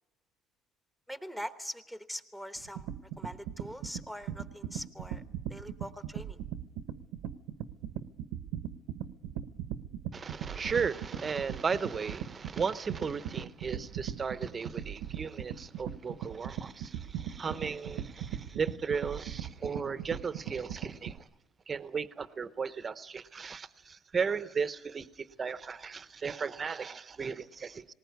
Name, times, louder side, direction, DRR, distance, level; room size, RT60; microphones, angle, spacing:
voice 1, 1.1-2.9 3.2-5.2 5.5-6.4, equal, 5° left, 10 dB, 1.0 m, -42 dB
sound 1, 2.6-21.2, right 10 dB, 90° right, 1.0 m, -38 dB
voice 2, 10.1-21.3 21.7-27.9, right 5 dB, 20° right, 14 dB, 0.8 m, -35 dB
19.5 x 19.0 x 9.4 m, 0.97 s
cardioid pair, 170°, 0 cm